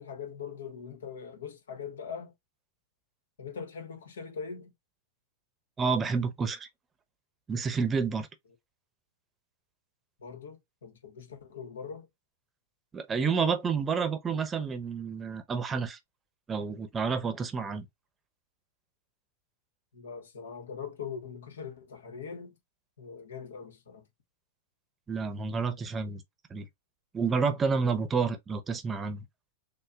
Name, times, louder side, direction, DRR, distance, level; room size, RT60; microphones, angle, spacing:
voice 1, 0.0-2.3 3.4-4.7 10.2-12.1 19.9-22.5 23.0-24.1, left 6 dB, 85° left, 1.3 m, -41 dB
voice 2, 5.8-6.7 7.5-8.3 12.9-16.0 16.5-17.9 25.1-26.2 26.5-26.7 27.1-29.3, right 5 dB, 20° right, 0.7 m, -29 dB
6.4 x 2.2 x 2.3 m
hypercardioid pair, 115°, 0 cm